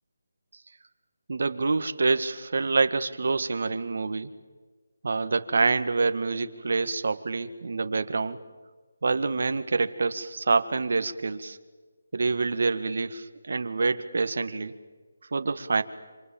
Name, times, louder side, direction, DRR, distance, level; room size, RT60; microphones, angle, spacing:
voice 1, 1.3-4.3 5.0-8.4 9.0-11.6 12.1-14.7 15.3-15.8, right 4 dB, 60° right, 10 dB, 1.8 m, -26 dB
28.0 x 26.5 x 7.1 m, 1.4 s
figure-of-eight pair, 165°, 0 cm